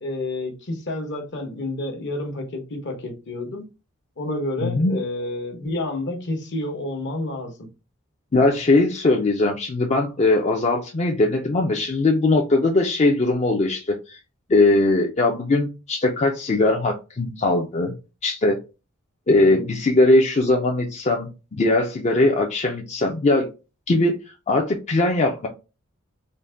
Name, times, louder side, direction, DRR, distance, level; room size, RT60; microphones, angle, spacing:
voice 1, 0.0-3.7 4.2-7.5 19.4-19.7, left 1 dB, 60° left, 1.1 m, -29 dB
voice 2, 4.6-5.0 8.3-14.2 14.5-17.9 18.2-18.6 19.3-23.5 23.9-25.5, left 2 dB, 35° left, 0.5 m, -20 dB
3.9 x 2.2 x 3.3 m
head